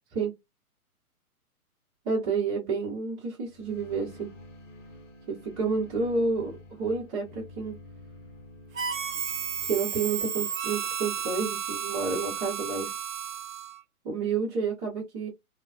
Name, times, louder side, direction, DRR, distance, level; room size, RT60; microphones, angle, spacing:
voice 1, 2.0-4.3 5.3-7.8 9.7-12.9 14.0-15.3, right 4 dB, 25° right, 0.9 m, -30 dB
sound 1, 3.5-9.8, left 2 dB, 55° left, 0.9 m, -49 dB
Harmonica, 8.7-13.8, right 7 dB, 60° right, 0.9 m, -33 dB
3.7 x 2.2 x 2.4 m
hypercardioid pair, 145°, 45 cm